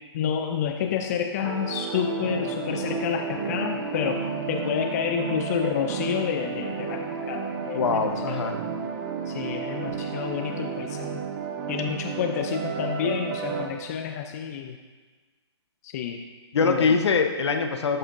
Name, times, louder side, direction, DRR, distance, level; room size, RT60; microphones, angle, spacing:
voice 1, 0.1-4.2 4.5-8.5 9.3-11.3 11.7-14.8 15.8-16.2 16.6-17.0, left 8 dB, 35° left, 4 dB, 0.5 m, -29 dB
sound 1, 1.4-13.7, right 6 dB, 35° right, 0.8 m, -32 dB
voice 2, 7.7-8.6 16.5-18.0, left 5 dB, 70° left, 6 dB, 0.9 m, -23 dB
12.5 x 6.6 x 2.6 m, 1.4 s
hypercardioid pair, 150°, 15 cm